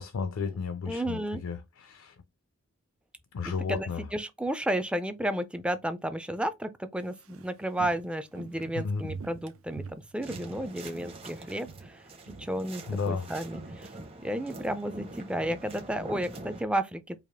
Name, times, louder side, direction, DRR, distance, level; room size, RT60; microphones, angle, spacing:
voice 1, 0.0-2.1 3.3-4.0 8.7-9.0 12.9-13.3, left 5 dB, 60° left, 0.4 m, -33 dB
voice 2, 0.9-1.4 3.7-13.9 14.2-17.2, right 1 dB, 5° right, 0.4 m, -32 dB
Walk footsteps, 7.0-11.3 11.6-12.0 12.3-14.6 14.9-15.0, right 5 dB, 65° right, 0.5 m, -46 dB
sound 1, 10.2-16.6, right 1 dB, 25° right, 0.8 m, -44 dB
4.9 x 2.4 x 3.5 m
head